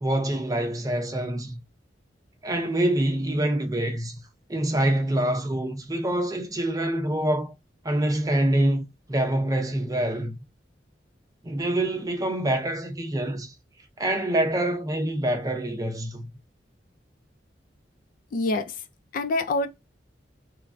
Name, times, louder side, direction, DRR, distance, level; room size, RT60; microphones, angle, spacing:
voice 1, 0.0-1.6 2.4-4.2 4.5-7.5 7.8-10.4 11.4-13.5 14.0-16.3, right 1 dB, 20° right, 0.5 m, -26 dB
voice 2, 18.3-18.8 19.1-19.7, left 2 dB, 50° left, 0.3 m, -25 dB
3.1 x 2.2 x 2.4 m
head